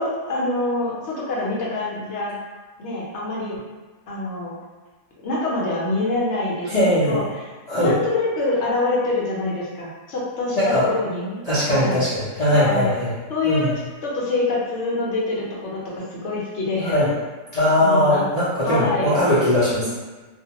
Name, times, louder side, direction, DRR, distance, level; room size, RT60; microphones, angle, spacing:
voice 1, 0.0-2.4 2.8-3.6 4.1-4.5 5.2-11.4 11.7-12.0 12.5-12.9 13.3-13.7 14.0-17.0 17.8-18.2 18.6-19.1 19.7-19.9, left 2 dB, 60° left, -6 dB, 0.9 m, -25 dB
voice 2, 6.7-7.1 7.7-7.9 10.6-10.9 11.4-13.1 13.4-13.7 16.8-17.1 17.5-19.9, left 1 dB, 45° left, -12 dB, 0.5 m, -20 dB
2.4 x 2.2 x 2.8 m, 1.3 s
omnidirectional pair, 1.5 m